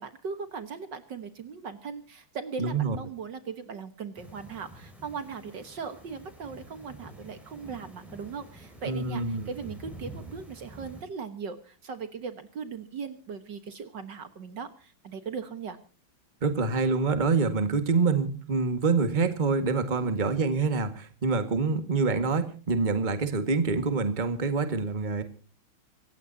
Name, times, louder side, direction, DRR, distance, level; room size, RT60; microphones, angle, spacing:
voice 1, 0.0-15.8 20.0-20.3, right 5 dB, 60° right, 10 dB, 1.9 m, -39 dB
voice 2, 2.6-3.0 8.8-9.5 16.4-25.2, right 4 dB, 25° right, 9 dB, 1.7 m, -26 dB
sound 1, 4.1-11.0, right 1 dB, ahead, 5.4 m, -48 dB
26.5 x 15.5 x 2.8 m, 0.38 s
omnidirectional pair, 2.3 m